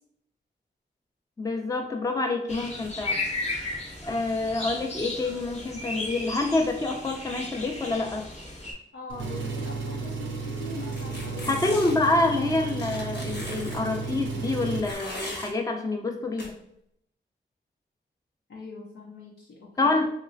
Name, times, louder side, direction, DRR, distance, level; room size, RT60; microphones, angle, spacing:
voice 1, 1.4-3.2 4.0-8.2 11.5-16.6 19.8-20.1, left 2 dB, 20° left, 3 dB, 0.5 m, -27 dB
sound 1, 2.5-8.7, left 2 dB, 35° left, 0.8 m, -35 dB
voice 2, 8.9-11.7 18.5-20.0, left 2 dB, 80° left, -4 dB, 0.6 m, -42 dB
Engine, 9.1-14.9, right 4 dB, 80° right, 0.5 m, -33 dB
sound 2, 10.9-12.1 12.8-13.8 14.8-15.5 16.4-16.5, left 1 dB, 65° left, 1.0 m, -38 dB
3.1 x 2.9 x 2.5 m, 0.74 s
wide cardioid pair, 65°, 19 cm